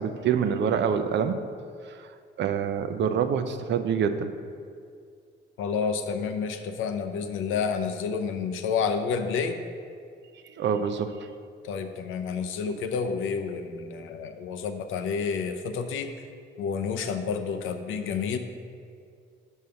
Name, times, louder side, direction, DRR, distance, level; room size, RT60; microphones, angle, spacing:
voice 1, 0.0-1.4 1.8-2.1 2.4-4.3 10.5-11.3, right 7 dB, 65° right, 9 dB, 0.6 m, -26 dB
voice 2, 5.6-9.6 11.6-16.1 16.6-18.4, left 6 dB, 85° left, 7 dB, 0.6 m, -29 dB
6.4 x 5.4 x 5.6 m, 2.3 s
cardioid pair, 90°, 20 cm